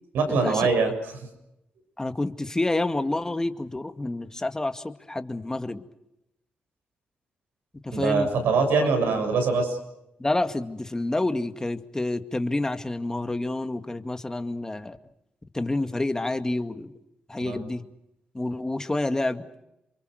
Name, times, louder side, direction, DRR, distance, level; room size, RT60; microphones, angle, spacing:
voice 1, 0.1-0.9 7.9-9.8 17.4-17.7, right 4 dB, 90° right, 5 dB, 7.1 m, -23 dB
voice 2, 2.0-5.8 7.8-8.3 8.8-8.9 10.2-15.0 15.5-16.9 17.3-17.8 18.3-19.5, left 2 dB, 15° left, 7 dB, 2.1 m, -28 dB
29.0 x 23.5 x 6.6 m, 0.87 s
cardioid pair, 75°, 3 cm